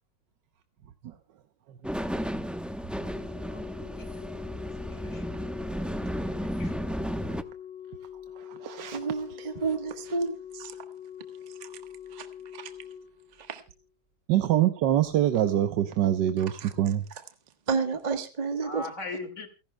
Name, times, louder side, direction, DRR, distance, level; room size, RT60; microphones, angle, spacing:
sound 1, 1.8-7.4, equal, ahead, 0.3 m, -33 dB
Organ, 3.0-13.9 15.0-15.2, left 9 dB, 25° left, 3.4 m, -44 dB
voice 1, 3.5-4.2 4.9-5.2 6.3-6.7 18.6-19.5, left 3 dB, 45° left, 7 dB, 2.6 m, -40 dB
voice 2, 8.4-9.0 14.3-17.1, right 11 dB, 85° right, 9 dB, 1.5 m, -25 dB
voice 3, 8.9-10.8 11.6-11.8 12.1-12.3 12.5-12.7 13.4-13.6 16.6-16.7 17.7-18.9, right 4 dB, 25° right, 7 dB, 1.3 m, -31 dB
29.0 x 11.5 x 2.2 m, 0.31 s
omnidirectional pair, 1.8 m